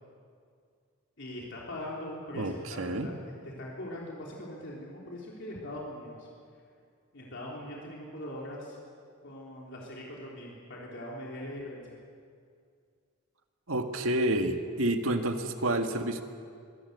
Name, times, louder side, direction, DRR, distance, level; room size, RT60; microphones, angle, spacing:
voice 1, 1.2-6.3 7.1-8.8 9.2-12.0, left 1 dB, 60° left, -4 dB, 3.5 m, -41 dB
voice 2, 2.4-3.1 13.7-16.2, right 1 dB, 80° right, 6 dB, 1.8 m, -29 dB
24.0 x 18.0 x 8.1 m, 2.2 s
head